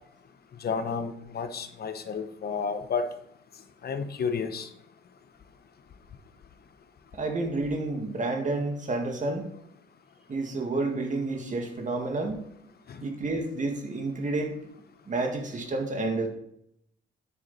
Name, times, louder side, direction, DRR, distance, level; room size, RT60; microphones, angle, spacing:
voice 1, 0.6-3.1 3.8-4.7 12.9-13.0, left 5 dB, 50° left, 9 dB, 1.0 m, -31 dB
voice 2, 7.1-9.5 10.3-12.5 13.0-14.6 15.1-16.3, right 2 dB, 40° right, 4 dB, 2.1 m, -30 dB
9.6 x 6.6 x 4.3 m, 0.73 s
cardioid pair, 90°, 20 cm